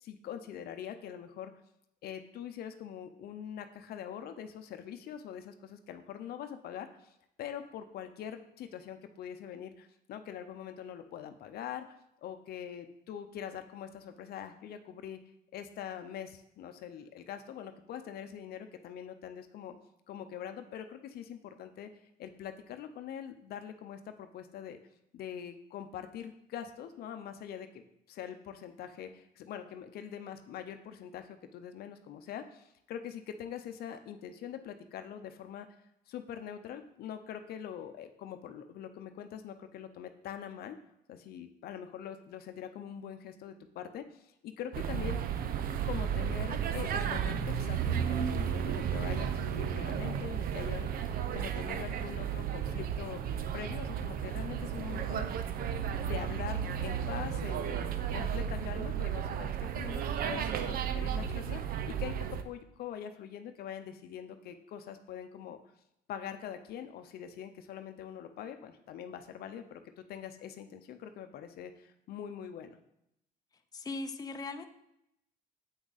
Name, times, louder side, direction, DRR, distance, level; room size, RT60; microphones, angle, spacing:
voice 1, 0.0-1.5 2.0-15.2 15.5-19.8 20.1-21.9 22.2-24.8 25.1-35.7 36.1-40.8 41.1-45.2 45.8-55.5 56.0-65.6 66.1-72.8, left 9 dB, 65° left, 8 dB, 0.7 m, -43 dB
sound 1, 44.7-62.4, right 8 dB, 60° right, 0.6 m, -33 dB
voice 2, 73.7-74.7, left 3 dB, 20° left, 6 dB, 0.7 m, -38 dB
8.0 x 6.1 x 4.1 m, 0.80 s
cardioid pair, 110°, 17 cm